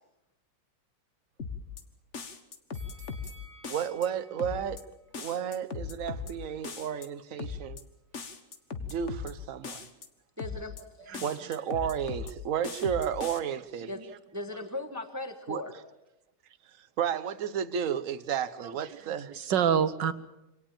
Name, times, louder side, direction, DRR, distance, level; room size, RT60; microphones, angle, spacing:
sound 1, 1.4-1.8 2.1-3.3 3.6-4.1 4.4-4.8 5.1-6.3 6.6-7.1 7.4-7.8 8.1-9.3 9.6-10.1 10.4-10.8 11.1-12.3 12.6-13.4, left 5 dB, 45° left, 1.7 m, -38 dB
sound 2, 2.7-5.8 6.2-6.3, right 1 dB, 35° right, 4.9 m, -56 dB
voice 1, 3.7-4.8 5.2-7.8 8.8-9.9 11.2-13.9 15.5-15.6 17.0-19.3, right 8 dB, 55° right, 1.2 m, -32 dB
voice 2, 10.4-11.2 13.9-14.0 14.3-15.7, left 2 dB, 10° right, 1.4 m, -38 dB
voice 3, 13.8-14.2 18.6-20.1, right 8 dB, 85° right, 1.9 m, -29 dB
25.5 x 18.0 x 7.3 m
omnidirectional pair, 1.9 m